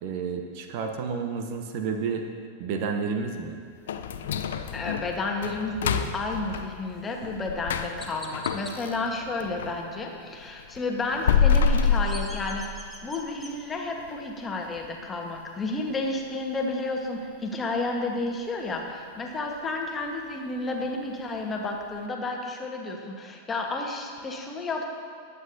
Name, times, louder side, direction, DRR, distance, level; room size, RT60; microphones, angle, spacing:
voice 1, 0.0-2.3 2.6-3.6, right 5 dB, 45° right, 5 dB, 0.9 m, -30 dB
sound 1, 3.9-9.8 10.2-13.0 13.4-13.5 14.0-14.1 14.6-14.9 15.2-15.3 15.9-16.0, left 6 dB, 60° left, 0.5 m, -27 dB
voice 2, 4.7-12.7 13.0-24.8, left 2 dB, 20° left, 1 dB, 1.4 m, -31 dB
Chirp tweet, 7.1-7.2 8.0-8.7 11.7-13.5, equal, 5° right, 1.3 m, -43 dB
20.0 x 8.1 x 2.8 m, 2.2 s
figure-of-eight pair, 90°, 0 cm